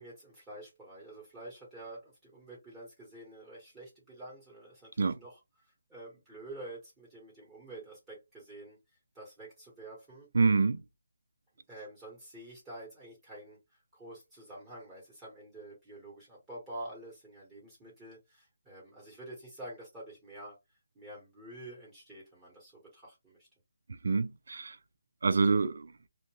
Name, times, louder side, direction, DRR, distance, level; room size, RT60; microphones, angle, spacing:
voice 1, 0.0-5.4 5.9-8.8 9.1-10.3 11.7-13.6 13.9-20.6 20.9-23.4, right 1 dB, 10° right, 1.3 m, -48 dB
voice 2, 10.3-10.8 24.0-24.8 25.2-25.9, right 4 dB, 65° right, 0.4 m, -26 dB
2.4 x 2.2 x 3.1 m
hypercardioid pair, 170°, 0 cm